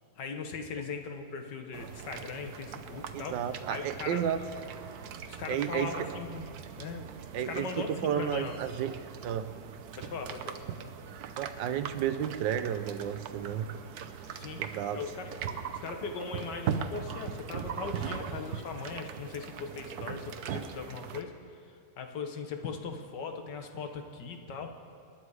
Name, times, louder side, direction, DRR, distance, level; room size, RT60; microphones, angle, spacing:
voice 1, 0.2-3.4 3.7-4.2 5.3-6.5 6.8-7.1 7.5-7.9 8.2-8.5 10.0-10.6 14.3-14.6 14.9-21.3 22.0-24.7, left 5 dB, 75° left, 5 dB, 1.8 m, -39 dB
sound 1, 1.7-21.2, right 7 dB, 65° right, 1.2 m, -40 dB
voice 2, 3.1-4.4 5.5-5.9 7.3-9.6 11.4-13.8 14.6-15.0, right 9 dB, 85° right, 10 dB, 1.4 m, -32 dB
27.5 x 10.5 x 4.8 m, 2.4 s
omnidirectional pair, 1.9 m